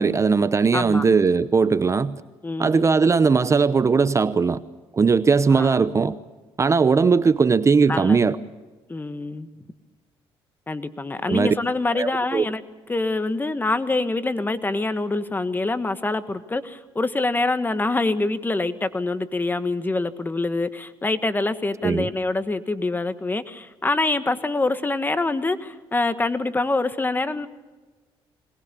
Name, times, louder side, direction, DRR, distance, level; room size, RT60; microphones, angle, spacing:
voice 1, 0.0-2.2 2.6-4.6 4.9-6.2 6.6-8.4 11.3-11.5 11.9-12.4 21.8-22.1, right 5 dB, 30° right, 0.8 m, -19 dB
voice 2, 0.7-1.0 2.4-3.0 5.5-5.8 7.9-8.2 8.9-9.5 10.7-12.6 12.9-27.5, left 2 dB, 20° left, 1.5 m, -25 dB
22.0 x 19.5 x 6.9 m
cardioid pair, 85°, 10 cm